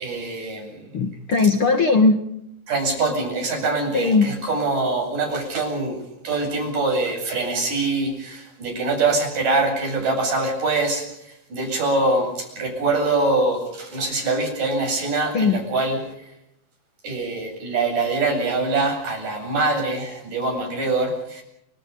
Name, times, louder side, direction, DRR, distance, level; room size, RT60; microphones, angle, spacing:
voice 1, 0.0-0.9 2.7-16.0 17.0-21.4, right 3 dB, 55° right, 4 dB, 9.5 m, -24 dB
voice 2, 0.9-2.2 3.9-4.3 15.3-15.6, left 4 dB, 45° left, 7 dB, 2.0 m, -18 dB
30.0 x 25.5 x 5.4 m, 0.79 s
omnidirectional pair, 4.5 m